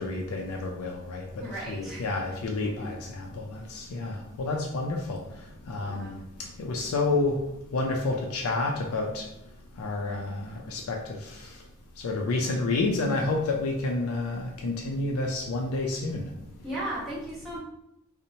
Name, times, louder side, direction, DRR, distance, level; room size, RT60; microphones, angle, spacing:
voice 1, 0.0-5.2 5.7-6.1 6.6-7.4 7.7-9.3 9.8-11.0 11.3-11.4 12.0-16.3, left 2 dB, 80° left, 1 dB, 0.4 m, -29 dB
voice 2, 1.4-2.0 5.8-6.2 16.6-17.6, right 1 dB, ahead, -10 dB, 0.8 m, -36 dB
2.8 x 2.0 x 2.6 m, 0.82 s
head